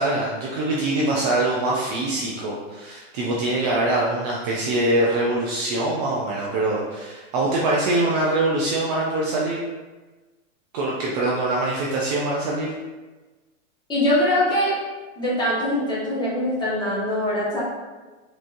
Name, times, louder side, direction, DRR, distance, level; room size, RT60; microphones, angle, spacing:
voice 1, 0.0-9.6 10.7-12.7, right 2 dB, 35° right, -4 dB, 0.5 m, -23 dB
voice 2, 13.9-14.8 15.2-17.6, left 1 dB, 10° left, -9 dB, 1.3 m, -22 dB
4.4 x 3.1 x 2.6 m, 1.2 s
hypercardioid pair, 145°, 37 cm